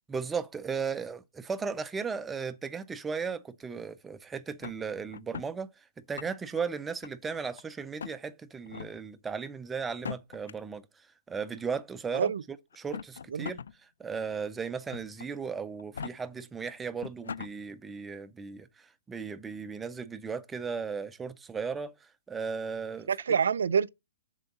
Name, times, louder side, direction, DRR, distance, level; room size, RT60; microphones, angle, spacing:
voice 1, 0.1-5.7 6.1-10.9 11.3-13.6 14.0-23.1, right 5 dB, 5° right, 0.4 m, -36 dB
sound 1, 4.6-5.5 6.0-6.6 7.0-7.6 8.0-8.2 8.7-8.9 9.9-10.5 11.6-11.7 12.7-13.7 14.1-14.2 14.9-15.3 15.8-16.1 16.7-16.8 17.0-17.5, left 7 dB, 85° left, 0.4 m, -40 dB
voice 2, 23.1-23.9, right 6 dB, 80° right, 0.4 m, -26 dB
7.4 x 6.8 x 4.0 m
hypercardioid pair, 180°, 0 cm